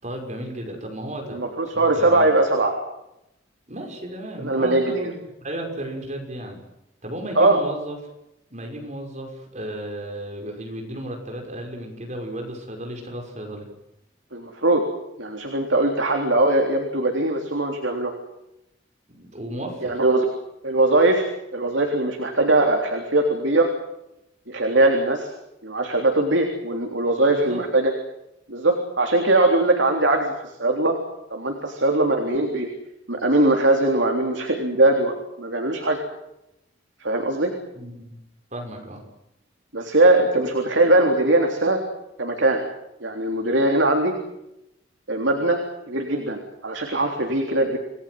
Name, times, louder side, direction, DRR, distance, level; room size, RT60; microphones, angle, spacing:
voice 1, 0.0-2.3 3.7-6.6 7.0-8.0 8.5-13.7 19.1-20.0 27.3-27.6 37.7-38.1 38.5-39.0, right 1 dB, 40° right, 2 dB, 5.8 m, -34 dB
voice 2, 1.3-2.8 4.4-5.1 7.4-7.6 14.3-14.8 15.2-18.1 19.8-20.3 20.6-21.3 21.5-23.7 24.5-25.3 25.6-27.9 28.5-30.3 30.6-30.9 31.3-32.7 33.1-36.0 37.0-37.5 39.7-41.8 42.2-42.6 43.0-44.1 45.1-45.6 45.9-47.8, right 2 dB, 70° right, 3 dB, 3.7 m, -20 dB
28.5 x 19.5 x 7.9 m, 0.86 s
head